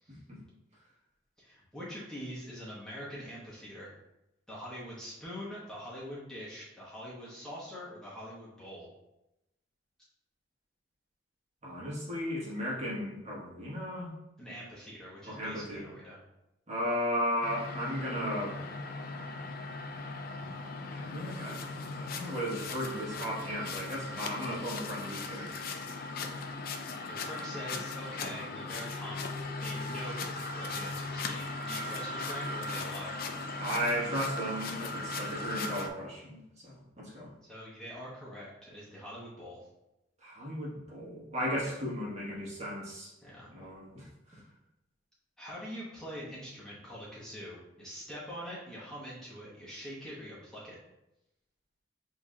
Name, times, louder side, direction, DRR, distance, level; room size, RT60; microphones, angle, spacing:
voice 1, 1.4-3.9 4.5-8.9 14.4-16.2 27.1-33.2 37.4-39.6 41.6-41.7 43.2-43.5 44.3-44.4 45.4-50.8, equal, 5° left, -8 dB, 1.0 m, -44 dB
voice 2, 11.6-14.1 15.2-15.9 16.7-18.6 20.9-25.5 33.6-37.3 40.2-43.1 43.5-44.1, equal, 40° right, -6 dB, 1.4 m, -35 dB
sound 1, 17.4-35.9, left 3 dB, 55° left, 0.4 m, -38 dB
6.9 x 2.8 x 2.4 m, 0.90 s
head